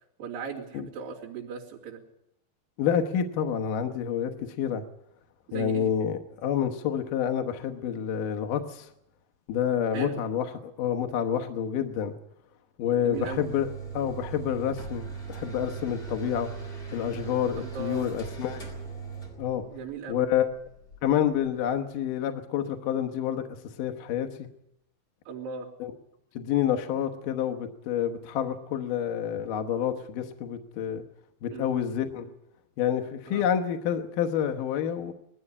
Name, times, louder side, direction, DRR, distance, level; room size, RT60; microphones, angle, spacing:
voice 1, 0.2-2.0 5.5-5.9 9.9-10.2 13.0-13.4 17.6-18.1 19.7-20.3 25.3-25.7 31.5-31.7 33.3-33.5, right 5 dB, 55° right, -4 dB, 4.4 m, -37 dB
voice 2, 2.8-4.8 5.5-8.9 9.5-12.2 12.8-13.7 13.9-16.5 16.9-18.6 19.4-19.6 20.1-20.5 21.0-23.5 23.8-24.5 25.8-25.9 26.3-31.0 31.4-32.3 32.8-35.1, left 9 dB, 70° left, 5 dB, 2.1 m, -28 dB
sound 1, 13.1-21.8, right 5 dB, 20° left, 4.2 m, -39 dB
20.0 x 14.5 x 9.8 m, 0.79 s
omnidirectional pair, 5.2 m